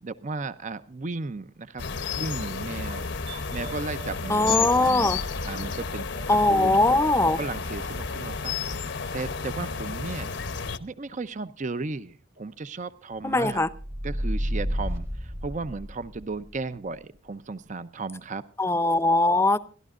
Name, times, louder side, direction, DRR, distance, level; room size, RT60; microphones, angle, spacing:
voice 1, 0.0-1.9 2.2-3.1 3.5-5.2 5.4-6.1 6.5-6.8 7.1-8.5 8.8-10.3 10.8-13.7 14.0-18.4, right 3 dB, 40° right, 13 dB, 0.6 m, -35 dB
sound 1, 1.8-10.8, left 5 dB, 65° left, 0.9 m, -32 dB
sound 2, 2.3-7.6 7.8-8.8 9.0-9.1, right 7 dB, 70° right, 4.7 m, -47 dB
voice 2, 4.3-5.2 6.3-7.4 13.2-13.7 18.6-19.6, left 2 dB, 15° left, 15 dB, 0.7 m, -21 dB
sound 3, 13.6-16.2, equal, 15° right, 1.0 m, -30 dB
28.5 x 12.5 x 2.5 m, 0.41 s
head